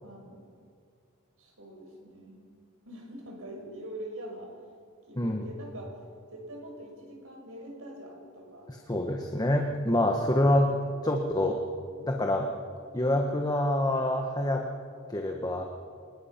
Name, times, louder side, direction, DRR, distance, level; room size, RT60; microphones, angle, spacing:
voice 1, 0.0-0.5 1.4-2.4 2.9-4.6 5.1-6.0 6.3-8.7, right 1 dB, 65° right, 0 dB, 6.3 m, -44 dB
voice 2, 8.7-11.6 12.0-12.5 12.9-14.6 15.1-15.6, left 1 dB, 20° left, 2 dB, 1.4 m, -26 dB
25.0 x 20.5 x 6.0 m, 2.2 s
head